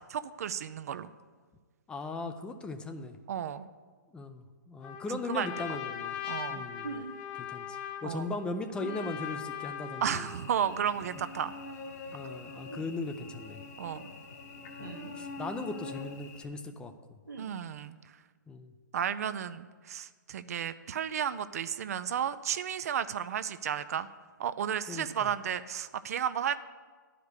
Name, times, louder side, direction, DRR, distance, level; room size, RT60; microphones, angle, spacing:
voice 1, 0.1-1.1 3.3-3.7 5.1-5.5 6.3-6.7 8.0-8.3 10.0-11.5 13.8-14.1 17.4-18.0 18.9-24.1 24.4-26.6, right 9 dB, 50° right, 13 dB, 0.4 m, -33 dB
voice 2, 1.9-3.2 4.1-6.2 6.5-7.0 7.4-10.3 12.1-13.6 14.8-16.9 18.5-18.7 24.9-25.3, left 3 dB, 10° left, 7 dB, 0.5 m, -38 dB
Trumpet, 4.8-10.5, left 9 dB, 25° left, 1.1 m, -40 dB
sound 1, 6.8-7.1 8.8-9.2 10.6-10.9 12.7-12.9 14.8-15.2 17.3-17.5, right 4 dB, 80° right, 1.2 m, -42 dB
Cricket / Buzz, 10.3-16.4, left 3 dB, 45° left, 1.3 m, -44 dB
10.5 x 5.0 x 8.1 m, 1.5 s
figure-of-eight pair, 130°, 10 cm